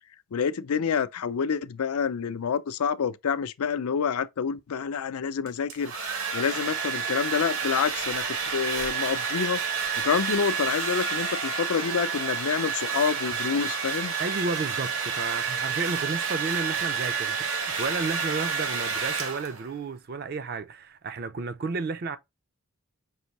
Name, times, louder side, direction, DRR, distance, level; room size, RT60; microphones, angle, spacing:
voice 1, 0.3-5.9 6.3-8.2 8.5-9.6 10.0-14.1, left 6 dB, 85° left, 0.5 m, -28 dB
Domestic sounds home sounds, 5.5-19.7, right 6 dB, 75° right, 1.0 m, -29 dB
voice 2, 14.2-22.2, right 4 dB, 45° right, 0.4 m, -32 dB
5.4 x 2.6 x 2.9 m
head